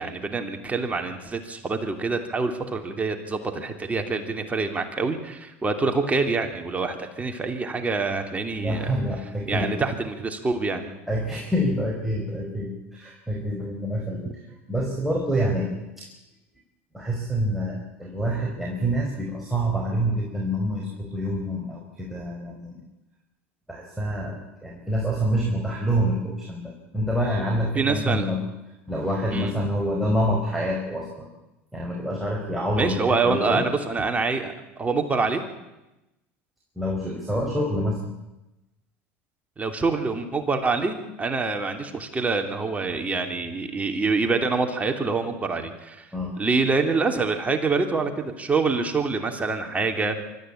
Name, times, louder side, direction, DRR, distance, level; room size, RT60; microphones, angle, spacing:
voice 1, 0.0-8.9 9.5-10.9 27.7-28.3 29.3-29.5 32.8-34.5 34.8-35.4 39.6-46.1 46.4-50.2, right 4 dB, 20° right, 5 dB, 3.0 m, -26 dB
voice 2, 8.4-9.7 11.1-16.1 16.9-22.8 23.7-28.4 28.9-31.3 31.7-33.7 36.7-38.1 46.1-46.3, equal, 5° right, -2 dB, 5.1 m, -27 dB
24.5 x 13.5 x 8.7 m, 0.99 s
hypercardioid pair, 90°, 7 cm